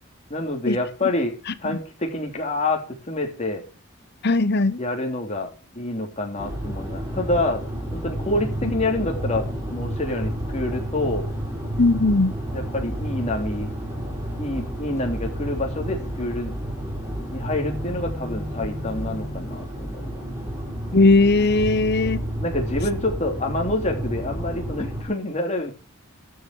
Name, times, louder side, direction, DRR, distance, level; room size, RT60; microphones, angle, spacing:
voice 1, 0.3-1.3 1.6-2.8 3.1-3.6 4.8-7.6 7.9-11.3 12.5-13.7 14.4-16.5 17.3-20.2 22.4-25.7, left 2 dB, 30° left, 3.4 m, -27 dB
voice 2, 4.2-4.8 8.6-8.7 11.8-12.4 20.9-22.2, left 3 dB, 50° left, 1.0 m, -18 dB
sound 1, 6.4-25.0, equal, 15° right, 4.3 m, -30 dB
13.0 x 7.2 x 6.2 m
head